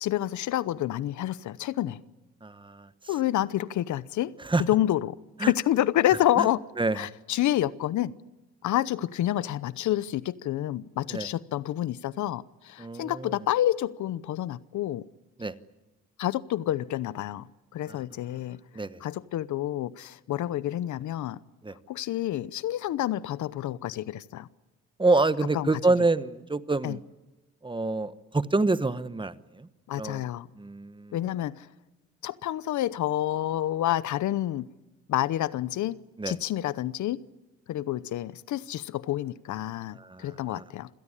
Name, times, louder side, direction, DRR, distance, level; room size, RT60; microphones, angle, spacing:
voice 1, 0.0-2.0 3.1-4.3 4.6-5.1 5.5-6.6 6.9-8.1 8.6-15.1 16.2-17.5 17.7-18.6 19.0-21.4 21.9-24.5 25.5-25.7 26.8-27.0 29.9-30.5 31.1-31.7 32.2-34.7 35.1-36.0 36.3-37.2 37.7-40.9, left 13 dB, 75° left, 0.8 m, -28 dB
voice 2, 2.4-2.9 4.4-4.6 5.4-5.5 6.4-6.5 6.8-7.1 11.1-11.3 12.8-13.3 15.4-15.5 17.9-18.0 18.7-19.0 21.6-21.8 25.0-27.0 27.6-29.7 30.0-30.2 30.6-31.2 36.2-36.4 40.0-40.6, right 3 dB, 15° right, 1.1 m, -27 dB
27.0 x 17.5 x 10.0 m
cardioid pair, 90°, 30 cm